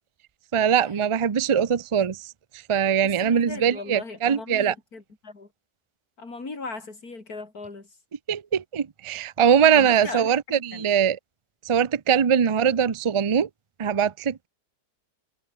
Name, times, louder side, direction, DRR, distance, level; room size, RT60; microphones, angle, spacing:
voice 1, 0.5-4.7 8.3-11.2 11.7-13.5 13.8-14.5, right 8 dB, 55° right, 0.3 m, -22 dB
voice 2, 3.0-5.5 6.2-7.9 9.7-10.9, left 3 dB, 65° left, 4.5 m, -38 dB
omnidirectional pair, 1.7 m